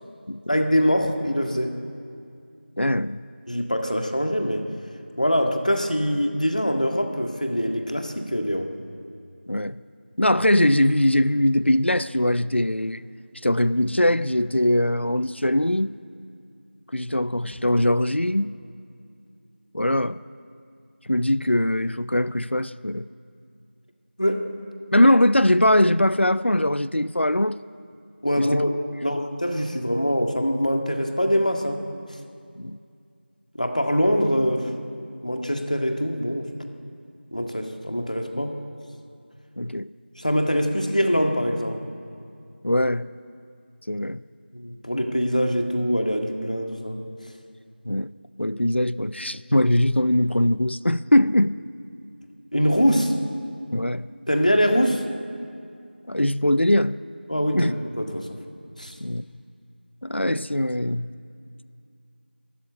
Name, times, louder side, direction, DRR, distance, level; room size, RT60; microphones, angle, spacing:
voice 1, 0.5-1.8 3.5-4.7 5.2-8.7 24.2-24.5 28.2-28.7 29.0-31.8 33.6-34.7 35.2-36.5 37.3-38.5 40.2-41.9 44.5-47.0 52.5-53.2 54.3-55.0 57.3-58.4 58.8-59.0, equal, 40° left, 1.9 m, -23 dB
voice 2, 2.8-3.2 9.5-9.8 10.2-13.0 13.4-15.9 16.9-18.5 19.7-20.2 21.1-23.0 24.9-27.6 28.4-28.6 32.5-32.8 38.3-38.4 39.6-39.9 42.6-43.1 43.9-44.2 47.9-48.1 48.4-51.5 53.7-54.1 56.1-57.0 57.5-57.7 59.0-59.3 60.0-61.1, left 1 dB, 75° left, 0.6 m, -21 dB
24.0 x 13.5 x 8.7 m
figure-of-eight pair, 180°, 6 cm